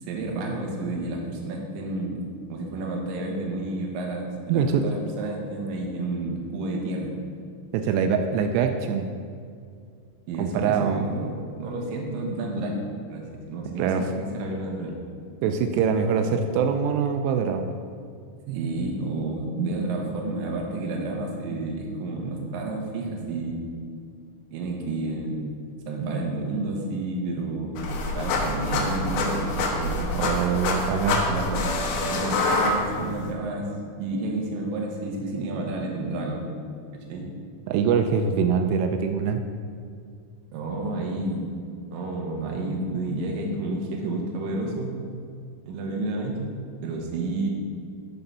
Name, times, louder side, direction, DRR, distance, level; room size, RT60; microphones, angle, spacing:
voice 1, 0.0-7.2 10.3-12.8 13.1-15.0 18.5-23.6 24.5-25.4 25.9-27.8 28.2-30.1 31.3-31.7 32.0-33.7 34.0-36.5 36.9-37.3 40.5-41.5 41.9-44.9 45.7-46.5 46.8-47.5, right 2 dB, 65° right, 0 dB, 2.6 m, -30 dB
voice 2, 4.5-4.8 7.7-9.1 10.4-11.1 13.8-14.0 15.4-17.7 30.0-31.3 37.7-39.4, right 6 dB, 85° right, 6 dB, 2.7 m, -24 dB
sound 1, 27.8-33.3, left 2 dB, 80° left, 3.0 m, -26 dB
11.5 x 3.9 x 5.4 m, 2.3 s
omnidirectional pair, 4.8 m